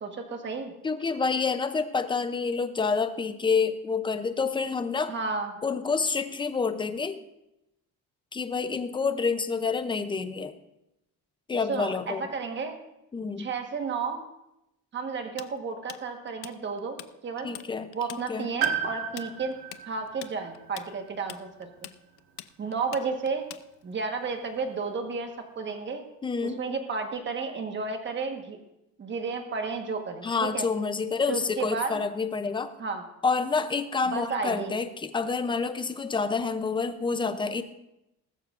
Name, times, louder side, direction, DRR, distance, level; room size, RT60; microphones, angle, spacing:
voice 1, 0.0-0.7 5.1-5.5 11.7-12.8 13.4-14.2 14.9-17.5 17.9-19.6 19.9-21.9 22.6-23.5 23.8-26.0 26.4-28.6 29.0-30.7 31.3-32.0 32.8-33.0 34.1-34.7, right 4 dB, 30° right, 5 dB, 1.3 m, -32 dB
voice 2, 0.8-5.1 5.6-7.2 8.3-10.5 11.5-12.3 13.1-13.5 17.4-17.9 18.3-18.5 26.2-26.6 30.2-32.7 33.2-37.6, left 4 dB, 15° left, 9 dB, 0.5 m, -28 dB
Tools, 15.4-17.1 17.4-17.7 17.9-24.0, left 15 dB, 85° left, 0.6 m, -43 dB
Piano, 18.6-22.5 22.7-22.8 24.0-24.1, right 9 dB, 65° right, 1.5 m, -35 dB
19.0 x 13.5 x 2.5 m, 0.88 s
cardioid pair, 175°, 37 cm